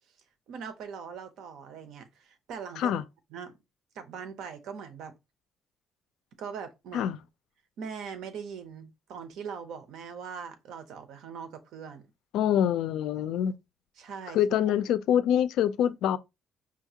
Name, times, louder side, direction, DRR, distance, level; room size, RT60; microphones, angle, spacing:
voice 1, 0.5-3.0 3.3-3.6 3.9-5.1 6.4-7.1 7.8-12.0 14.0-14.4, right 6 dB, 75° right, 0.7 m, -41 dB
voice 2, 12.3-13.5 14.3-16.2, left 10 dB, 90° left, 0.4 m, -25 dB
5.1 x 2.4 x 2.8 m
cardioid pair, 165°, 0 cm